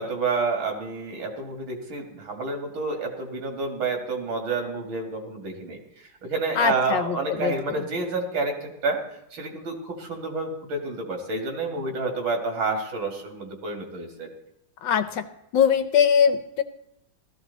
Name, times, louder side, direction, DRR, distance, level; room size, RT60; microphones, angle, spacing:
voice 1, 0.0-9.0 9.3-14.3, right 3 dB, 75° right, 2 dB, 3.0 m, -29 dB
voice 2, 6.6-7.5 14.8-15.3 15.5-16.6, left 7 dB, 70° left, 10 dB, 1.4 m, -21 dB
16.0 x 13.5 x 4.1 m, 0.81 s
omnidirectional pair, 2.2 m